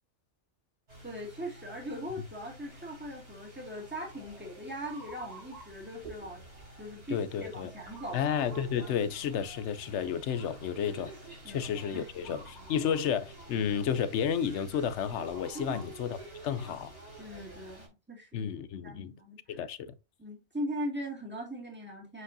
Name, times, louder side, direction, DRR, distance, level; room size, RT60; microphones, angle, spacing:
sound 1, 0.9-17.9, right 1 dB, 65° right, 4.2 m, -49 dB
voice 1, 1.0-6.4 6.8-8.2 11.4-12.3 12.6-12.7 15.5-15.8 17.2-18.5 18.8-19.7 20.2-22.2, equal, 10° right, 2.2 m, -40 dB
voice 2, 7.1-7.7 8.1-11.1 11.5-16.2 16.4-16.9 18.3-19.1 19.5-19.9, left 8 dB, 75° left, 0.9 m, -32 dB
8.1 x 4.9 x 2.7 m
omnidirectional pair, 1.2 m